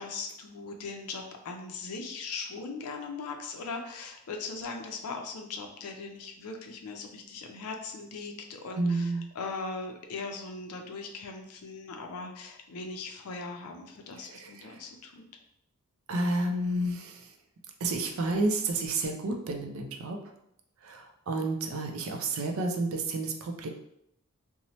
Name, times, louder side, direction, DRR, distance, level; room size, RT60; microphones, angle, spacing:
voice 1, 0.0-15.2, left 4 dB, 85° left, 3 dB, 0.4 m, -39 dB
voice 2, 8.8-9.3 14.2-14.8 16.1-17.3 17.8-20.2 20.8-23.7, right 2 dB, 65° right, 3 dB, 0.4 m, -30 dB
2.8 x 2.0 x 2.9 m, 0.77 s
head